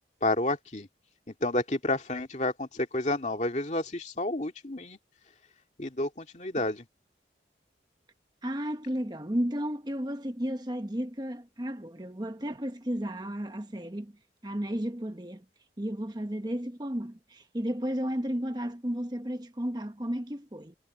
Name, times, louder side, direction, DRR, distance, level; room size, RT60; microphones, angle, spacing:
voice 1, 0.2-0.9 1.3-5.0 5.8-6.8, left 2 dB, 40° left, 2.3 m, -30 dB
voice 2, 8.4-14.1 14.4-15.4 15.8-20.8, equal, 25° right, 1.2 m, -33 dB
head